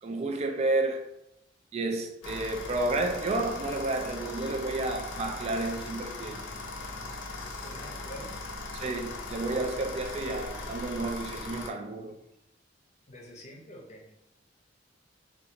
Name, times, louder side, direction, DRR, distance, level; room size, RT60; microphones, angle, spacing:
voice 1, 0.0-1.1 1.7-6.4 8.7-12.2, right 2 dB, 35° right, 0.3 m, -31 dB
sound 1, 2.2-11.7, left 2 dB, 80° left, 0.5 m, -39 dB
voice 2, 7.6-8.3 13.1-14.1, equal, 40° left, 0.6 m, -46 dB
2.6 x 2.4 x 2.8 m
head